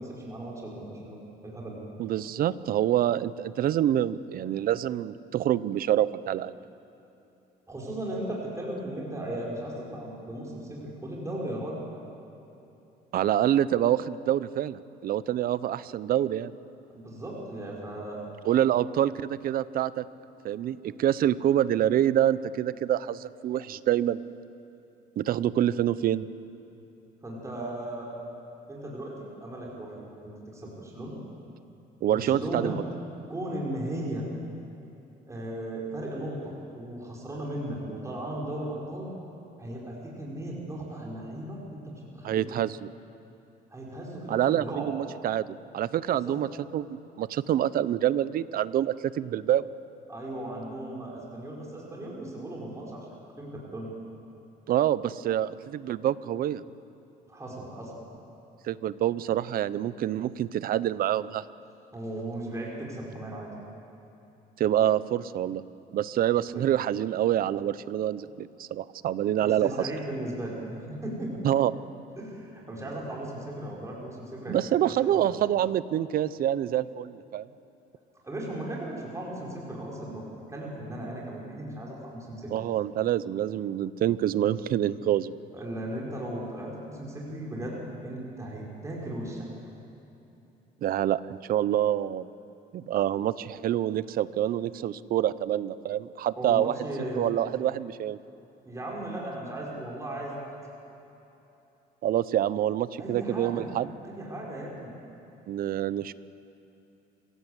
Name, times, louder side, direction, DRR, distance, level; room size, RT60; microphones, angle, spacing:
voice 1, 0.0-1.8 7.7-11.8 16.9-18.2 27.2-28.1 28.7-29.9 30.2-31.2 32.1-32.8 33.3-34.3 35.3-39.1 39.6-42.5 43.7-45.0 46.1-46.4 50.1-53.1 53.4-53.9 57.3-58.0 61.9-63.5 66.5-66.6 69.4-70.5 71.0-71.3 72.2-74.6 75.0-75.2 78.2-82.5 85.5-89.5 96.4-97.3 98.7-100.5 103.0-103.7 104.0-104.9, right 1 dB, 15° right, -4 dB, 5.5 m, -36 dB
voice 2, 2.0-6.5 13.1-16.5 18.4-20.0 20.4-24.2 25.2-26.3 32.0-32.8 42.2-42.9 44.3-46.5 46.7-49.7 54.7-56.6 58.6-61.4 64.6-65.6 65.9-69.9 71.4-71.7 74.5-77.5 82.5-85.3 90.8-92.3 92.7-96.7 97.1-98.2 102.0-103.9 105.5-106.1, right 11 dB, 60° right, 16 dB, 0.8 m, -26 dB
27.0 x 16.5 x 8.2 m, 3.0 s
cardioid pair, 110°, 17 cm